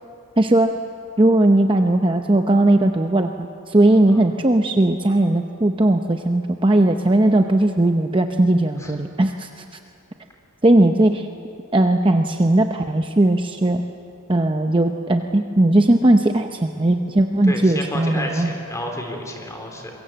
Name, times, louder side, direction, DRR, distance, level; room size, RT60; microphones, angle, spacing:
voice 1, 0.4-0.7 1.2-9.5 10.6-11.3 11.7-13.8 14.3-18.5, right 1 dB, 25° right, 5 dB, 0.7 m, -18 dB
voice 2, 17.4-19.9, left 1 dB, 15° left, 2 dB, 3.4 m, -30 dB
26.0 x 22.5 x 7.9 m, 2.6 s
head